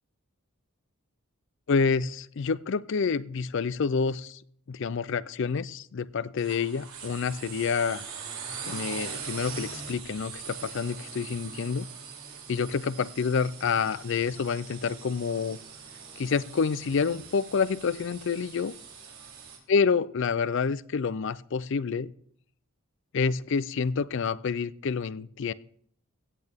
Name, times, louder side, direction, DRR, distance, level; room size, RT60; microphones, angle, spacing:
voice 1, 1.7-4.4 4.7-8.0 8.6-11.9 12.5-15.6 16.2-18.8 19.7-22.1 23.1-25.5, left 5 dB, 60° left, 0.4 m, -28 dB
sound 1, 6.4-19.6, right 6 dB, 80° right, 3.6 m, -42 dB
16.5 x 8.6 x 3.5 m
head